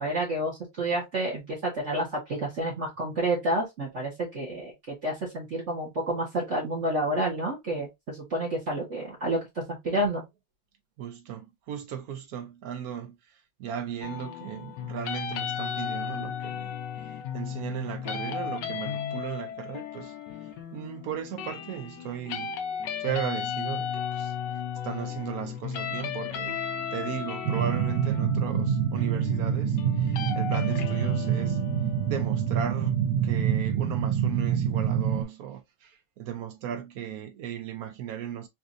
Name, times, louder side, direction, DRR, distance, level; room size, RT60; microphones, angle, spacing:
voice 1, 0.0-10.2, right 1 dB, 45° right, 1.1 m, -29 dB
voice 2, 11.0-20.2 20.4-22.6 23.0-26.6 26.9-31.6 32.1-38.5, right 9 dB, 70° right, 0.8 m, -36 dB
sound 1, 14.0-34.0, left 8 dB, 70° left, 1.3 m, -35 dB
sound 2, 27.4-35.2, right 8 dB, 85° right, 1.5 m, -26 dB
4.2 x 2.5 x 2.4 m
omnidirectional pair, 2.1 m